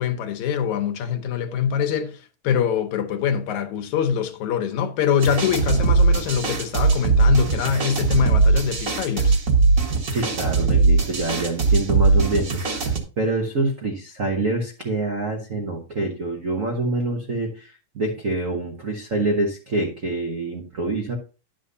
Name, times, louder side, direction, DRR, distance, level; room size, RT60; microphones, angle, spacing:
voice 1, 0.0-9.4, left 7 dB, 75° left, 2.3 m, -24 dB
sound 1, 5.2-13.0, right 4 dB, 45° right, 1.1 m, -20 dB
voice 2, 10.1-21.1, right 2 dB, 85° right, 0.7 m, -26 dB
11.0 x 7.4 x 2.7 m
omnidirectional pair, 3.4 m